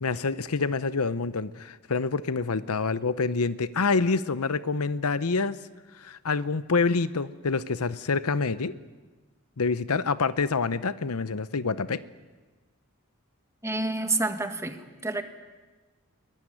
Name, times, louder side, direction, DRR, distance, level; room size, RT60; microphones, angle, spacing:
voice 1, 0.0-5.6 6.0-8.7 9.6-12.0, left 4 dB, 75° left, 14 dB, 0.8 m, -27 dB
voice 2, 13.6-15.2, right 2 dB, 15° right, 7 dB, 1.6 m, -29 dB
22.0 x 19.0 x 10.0 m, 1.3 s
head